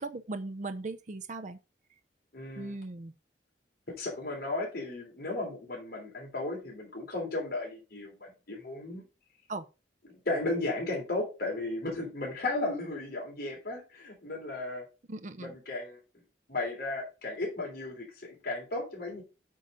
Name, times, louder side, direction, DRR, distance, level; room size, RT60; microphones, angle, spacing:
voice 1, 0.0-1.6 2.6-3.1 9.5-9.6 15.1-15.5, right 3 dB, 45° right, 0.6 m, -38 dB
voice 2, 2.3-2.8 3.9-9.0 10.1-14.8 15.4-16.0 16.5-19.2, left 2 dB, 55° left, 3.3 m, -35 dB
8.5 x 3.9 x 5.1 m
head